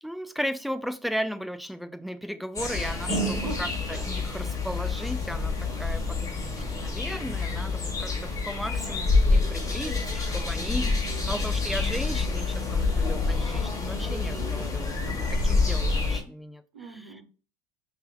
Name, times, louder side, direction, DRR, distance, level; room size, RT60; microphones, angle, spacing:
voice 1, 0.0-10.9 11.3-16.6, equal, ahead, 0.3 m, -36 dB
sound 1, 2.6-16.2, left 3 dB, 20° left, 1.4 m, -27 dB
voice 2, 3.3-4.0 10.8-11.4 15.0-15.7 16.7-17.2, right 3 dB, 85° right, 1.0 m, -42 dB
5.3 x 2.7 x 2.3 m
hypercardioid pair, 90°, 18 cm